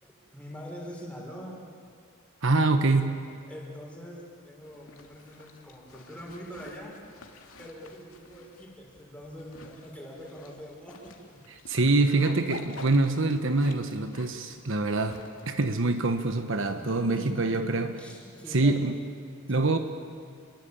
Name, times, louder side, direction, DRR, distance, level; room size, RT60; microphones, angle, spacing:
voice 1, 0.0-1.6 2.9-3.1 3.5-4.2 4.4-6.9 7.6-11.2 11.6-11.8 16.7-19.0, equal, 5° left, 6.0 m, -43 dB
voice 2, 2.4-3.2 11.7-15.2 15.5-18.0 18.5-19.0 19.5-19.8, right 2 dB, 60° right, 1.3 m, -25 dB
Zipper (clothing), 4.6-17.1, left 3 dB, 75° left, 2.6 m, -50 dB
29.5 x 22.5 x 8.8 m
head